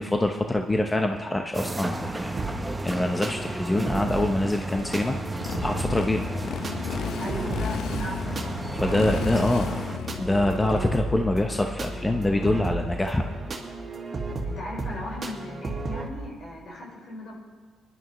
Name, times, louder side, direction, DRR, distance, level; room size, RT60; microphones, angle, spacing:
voice 1, 0.0-2.5 2.8-5.1 5.6-6.2 8.7-9.7 10.2-13.3, left 1 dB, 15° left, 3 dB, 0.8 m, -25 dB
sound 1, 1.5-10.0, right 2 dB, 15° right, 0.9 m, -34 dB
sound 2, 2.4-16.1, right 2 dB, 40° right, 2.1 m, -34 dB
Motorcycle, 4.7-13.3, left 8 dB, 75° left, 0.5 m, -35 dB
voice 2, 7.2-9.1 14.4-17.3, left 1 dB, 60° left, -3 dB, 5.0 m, -37 dB
20.5 x 11.5 x 3.2 m, 1.5 s
cardioid pair, 90°, 0 cm